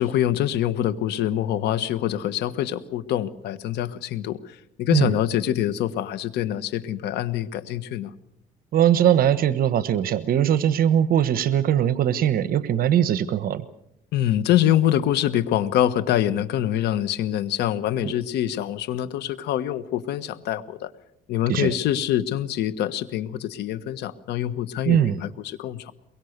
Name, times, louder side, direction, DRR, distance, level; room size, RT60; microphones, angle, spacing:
voice 1, 0.0-4.4 4.8-8.1 14.1-20.9 21.3-25.9, left 11 dB, 80° left, 15 dB, 1.4 m, -25 dB
voice 2, 8.7-13.6 18.0-18.1 21.5-21.7 24.8-25.2, right 10 dB, 60° right, 14 dB, 1.2 m, -20 dB
23.0 x 23.0 x 6.7 m, 0.77 s
cardioid pair, 110°, 17 cm